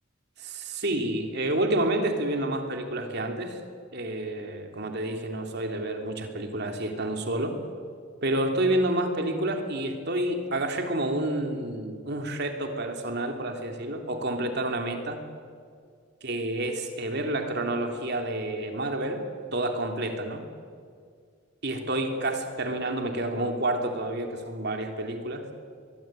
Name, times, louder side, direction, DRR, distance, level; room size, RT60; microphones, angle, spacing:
voice 1, 0.4-3.6 3.9-7.6 8.2-15.2 16.2-19.2 19.5-20.4 21.6-25.5, right 1 dB, 55° right, 4 dB, 3.1 m, -29 dB
23.5 x 22.0 x 9.1 m, 2.1 s
head